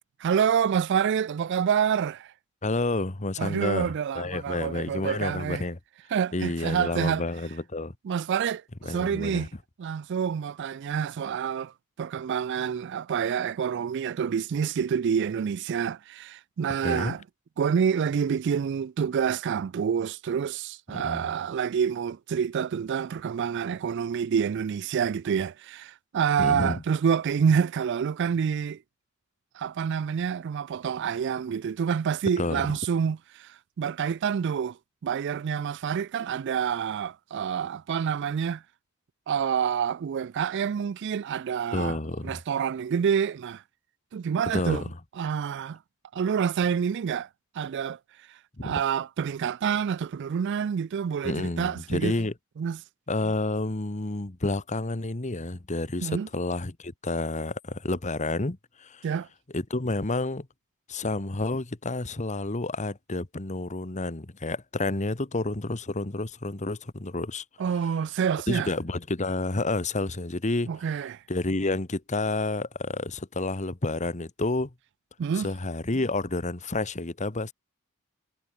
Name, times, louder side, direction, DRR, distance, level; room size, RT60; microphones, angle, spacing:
voice 1, 0.2-2.3 3.4-5.6 6.1-7.2 8.0-9.5 9.8-11.7 12.0-17.2 17.6-28.8 29.5-34.8 35.0-38.6 39.3-42.0 42.2-43.6 44.1-44.8 45.2-45.8 46.1-47.3 47.6-48.0 48.6-52.2 52.6-52.8 56.0-56.3 59.0-59.3 67.6-68.7 70.7-71.2 75.2-75.5, right 7 dB, 55° right, 0.3 m, -27 dB
voice 2, 2.6-5.8 6.3-7.9 8.8-9.5 16.8-17.1 20.9-21.3 26.4-26.8 32.4-32.7 41.7-42.4 44.5-44.9 48.6-48.7 51.2-52.3 53.1-59.0 59.5-60.5 60.9-67.4 68.5-70.7 71.3-74.7 75.3-77.5, left 2 dB, 35° left, 1.2 m, -30 dB
head